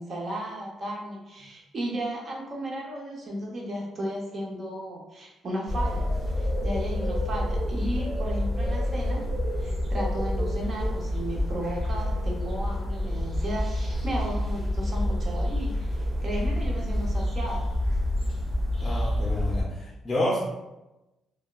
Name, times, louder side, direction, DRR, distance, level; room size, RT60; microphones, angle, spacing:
voice 1, 0.0-9.2 9.6-17.7, right 1 dB, 50° right, -1 dB, 0.7 m, -34 dB
sound 1, 5.7-19.6, left 1 dB, 5° right, 1.3 m, -28 dB
voice 2, 18.8-20.4, left 1 dB, 30° left, -3 dB, 0.4 m, -29 dB
3.3 x 2.1 x 2.3 m, 1.0 s
cardioid pair, 90°, 0 cm